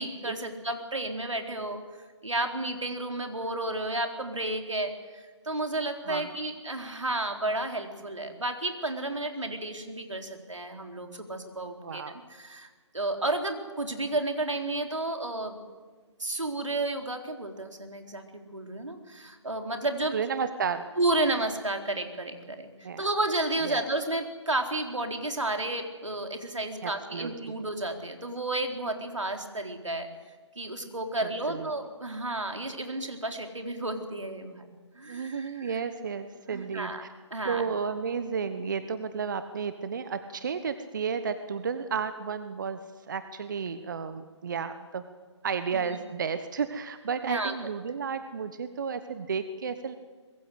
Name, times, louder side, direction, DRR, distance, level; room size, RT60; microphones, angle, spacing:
voice 1, 0.0-1.8 2.2-12.0 12.3-12.7 12.9-15.6 16.2-20.2 21.0-30.1 30.6-34.6 35.0-35.8 36.5-37.0 37.3-37.7 45.7-46.0 47.2-47.5, right 2 dB, 80° right, 4 dB, 4.1 m, -32 dB
voice 2, 11.8-12.1 20.1-20.8 22.8-23.0 23.6-23.8 26.8-27.6 31.5-31.7 35.1-37.1 37.4-42.8 43.1-45.0 45.4-50.0, right 6 dB, 40° right, 11 dB, 1.1 m, -32 dB
24.0 x 21.5 x 8.2 m, 1.5 s
figure-of-eight pair, 150°, 16 cm